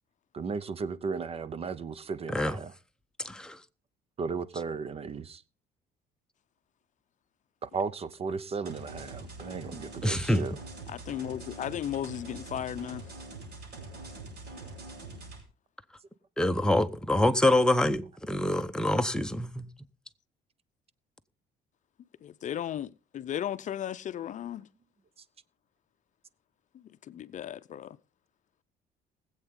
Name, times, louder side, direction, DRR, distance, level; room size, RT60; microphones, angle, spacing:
voice 1, 0.3-2.7 4.2-5.4 7.6-10.6, right 5 dB, 35° right, 0.7 m, -35 dB
voice 2, 3.2-3.6 10.0-10.4 16.4-19.7, left 1 dB, 5° left, 0.8 m, -26 dB
sound 1, 8.6-15.4, right 2 dB, 70° right, 6.6 m, -44 dB
voice 3, 10.9-13.0 22.2-24.7 27.1-28.0, left 10 dB, 45° left, 0.6 m, -35 dB
20.5 x 8.1 x 3.7 m
cardioid pair, 110°, 17 cm